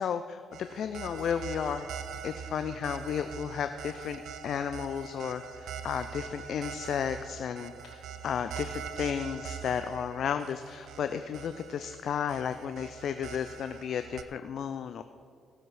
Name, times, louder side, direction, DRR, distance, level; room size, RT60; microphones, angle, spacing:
voice 1, 0.0-1.9 2.2-15.0, left 7 dB, 65° left, 10 dB, 0.4 m, -33 dB
sound 1, 0.5-14.2, right 7 dB, 70° right, 0.6 m, -43 dB
17.0 x 7.6 x 4.8 m, 2.4 s
hypercardioid pair, 45°, 0 cm